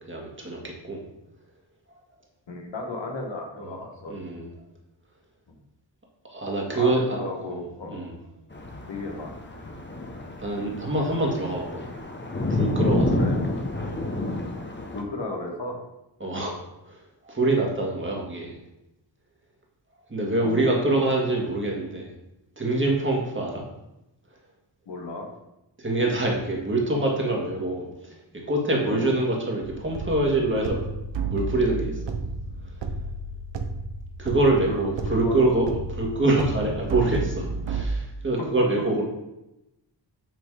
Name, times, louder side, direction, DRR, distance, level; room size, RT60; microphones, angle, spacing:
voice 1, 0.1-1.0 4.1-4.5 6.3-7.2 7.5-7.6 7.9-8.1 10.4-11.9 12.5-13.2 13.8-14.0 16.2-16.6 16.9-18.5 20.1-22.1 22.6-23.6 25.8-30.8 31.3-32.1 34.2-39.0, right 2 dB, 25° right, -1 dB, 1.9 m, -25 dB
voice 2, 2.5-4.1 5.5-5.6 6.7-8.1 8.9-9.3 13.1-13.4 14.9-15.8 20.4-21.0 24.9-25.3 28.8-29.1 34.7-35.5 38.4-38.5, left 2 dB, 80° left, 1 dB, 1.4 m, -34 dB
sound 1, 8.5-15.0, left 1 dB, 25° left, 1.0 m, -29 dB
sound 2, 29.6-37.9, right 3 dB, 75° right, 0.8 m, -32 dB
8.1 x 3.3 x 4.9 m, 0.91 s
cardioid pair, 70°, 44 cm